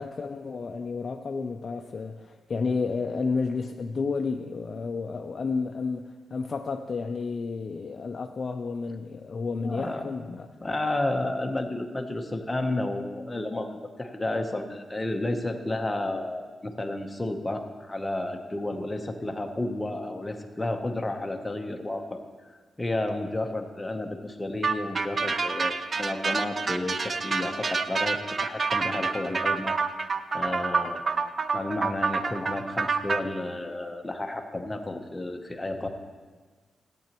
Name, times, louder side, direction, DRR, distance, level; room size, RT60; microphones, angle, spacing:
voice 1, 0.0-10.5, left 4 dB, 45° left, 4 dB, 0.4 m, -31 dB
voice 2, 9.6-22.2 22.8-29.8 30.3-31.1 31.5-35.9, left 2 dB, 15° left, 4 dB, 0.9 m, -31 dB
sound 1, 24.6-33.2, right 4 dB, 40° right, 0.4 m, -28 dB
13.5 x 8.5 x 3.0 m, 1.4 s
cardioid pair, 100°, 0 cm